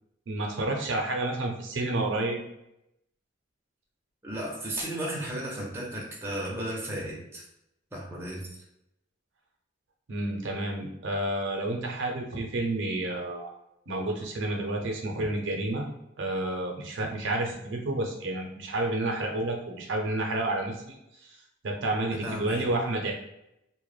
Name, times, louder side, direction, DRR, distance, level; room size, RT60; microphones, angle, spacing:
voice 1, 0.3-2.4 10.1-13.5 13.9-15.8 16.2-21.4 21.6-23.1, right 2 dB, 80° right, 1 dB, 0.5 m, -30 dB
voice 2, 4.2-7.5 7.9-8.5 22.2-22.7, right 1 dB, 15° right, -4 dB, 0.5 m, -34 dB
2.1 x 2.1 x 3.1 m, 0.83 s
head